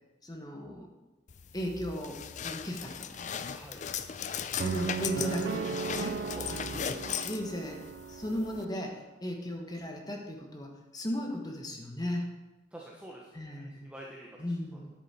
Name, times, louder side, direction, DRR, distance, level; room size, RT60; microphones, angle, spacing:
voice 1, 0.2-0.9 1.5-3.1 4.6-6.2 6.5-7.8 8.1-12.2 13.3-13.9 14.4-14.9, left 1 dB, 20° left, 1 dB, 1.3 m, -36 dB
sound 1, 1.3-8.6, left 7 dB, 40° left, 0.4 m, -38 dB
voice 2, 3.5-3.8 6.2-6.8 12.7-14.8, right 1 dB, 5° right, -3 dB, 1.0 m, -48 dB
sound 2, 4.6-8.7, right 6 dB, 60° right, 0.3 m, -36 dB
10.0 x 8.2 x 4.3 m, 1.1 s
head